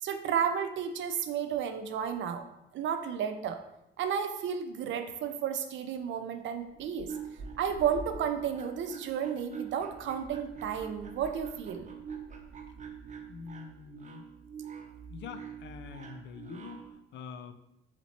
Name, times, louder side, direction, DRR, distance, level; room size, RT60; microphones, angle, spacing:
voice 1, 0.0-2.4 2.7-3.6 4.0-7.1 7.6-11.9, right 8 dB, 70° right, 8 dB, 0.5 m, -32 dB
sound 1, 6.7-16.9, right 6 dB, 40° right, 0.8 m, -45 dB
voice 2, 13.3-14.2 15.1-17.5, left 6 dB, 65° left, 10 dB, 0.4 m, -45 dB
4.2 x 3.0 x 4.2 m, 0.87 s
cardioid pair, 90°, 20 cm